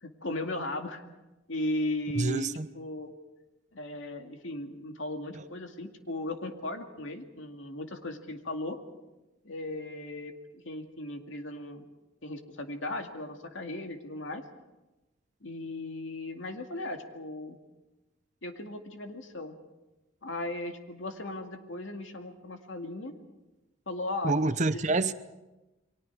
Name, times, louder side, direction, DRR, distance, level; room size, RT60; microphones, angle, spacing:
voice 1, 0.0-1.0 1.5-3.1 3.7-8.8 9.4-11.9 12.2-14.4 15.4-17.6 18.4-19.5 20.2-23.2 23.9-24.3 24.7-24.8, left 1 dB, 80° left, 2.2 m, -37 dB
voice 2, 2.1-2.7 5.3-5.4 24.2-25.1, right 3 dB, 40° right, 0.8 m, -27 dB
29.5 x 23.0 x 4.8 m
head